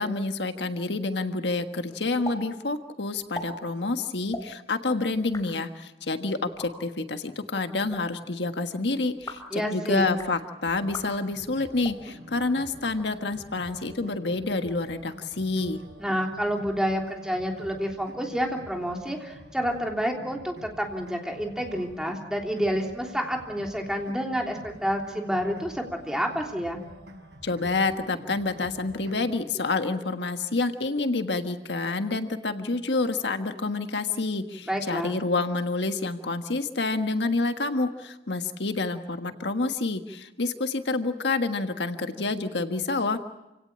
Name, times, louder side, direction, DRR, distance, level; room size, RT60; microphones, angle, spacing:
voice 1, 0.0-15.8 27.4-43.2, left 3 dB, 80° left, 7 dB, 1.5 m, -28 dB
sound 1, 2.2-2.4 2.6-2.7 3.2-3.5 4.2-4.4 5.1-5.4 6.4-6.7 7.7-8.0 9.1-9.5 10.0-10.3 10.9-11.1 11.7-12.0 12.7-13.4, left 2 dB, 20° left, 4.0 m, -40 dB
voice 2, 9.5-10.2 16.0-26.8 34.6-35.2, equal, 5° right, 1 dB, 3.3 m, -29 dB
sound 2, 10.7-29.4, equal, 90° right, 5.6 m, -48 dB
28.0 x 17.5 x 8.8 m, 0.99 s
head